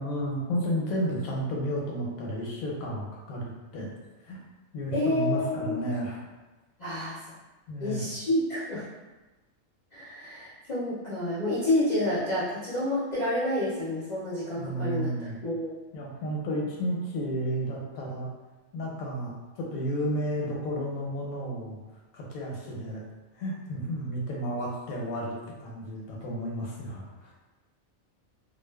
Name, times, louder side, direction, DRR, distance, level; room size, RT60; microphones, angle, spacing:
voice 1, 0.0-3.9 4.2-4.4 4.7-6.2 7.7-8.1 14.6-15.3 15.9-18.3 18.7-21.8 22.1-23.0 23.3-25.3 25.6-27.3, equal, 85° left, -2 dB, 1.0 m, -32 dB
voice 2, 4.9-5.8 6.8-7.3 7.8-8.9 9.9-15.8, left 1 dB, 55° left, -11 dB, 0.5 m, -29 dB
2.4 x 2.3 x 2.2 m, 1.1 s
omnidirectional pair, 1.4 m